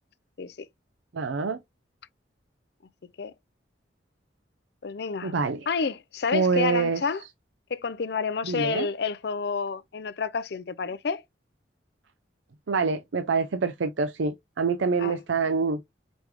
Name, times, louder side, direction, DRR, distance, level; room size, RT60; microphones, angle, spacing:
voice 1, 1.1-1.6 5.2-5.7 6.3-7.0 8.4-8.9 12.7-15.8, right 4 dB, 90° right, 0.5 m, -26 dB
voice 2, 4.8-5.3 5.7-7.2 7.7-11.2 15.0-15.2, left 5 dB, 60° left, 0.5 m, -29 dB
5.1 x 3.5 x 2.9 m
head